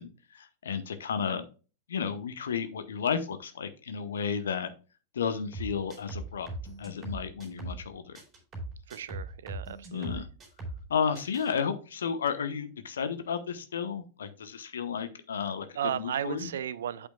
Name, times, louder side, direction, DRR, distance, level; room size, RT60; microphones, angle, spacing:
voice 1, 0.0-1.5 1.9-4.7 5.1-6.5 6.8-8.2 9.9-10.3 10.9-15.7 15.9-16.5, left 6 dB, 65° left, 1.0 m, -32 dB
sound 1, 5.5-7.9 8.1-10.9 11.1-11.5, right 1 dB, 25° right, 4.2 m, -40 dB
voice 2, 8.9-10.2 15.7-17.1, right 9 dB, 60° right, 0.5 m, -34 dB
8.4 x 8.2 x 2.3 m
figure-of-eight pair, 90°, 0 cm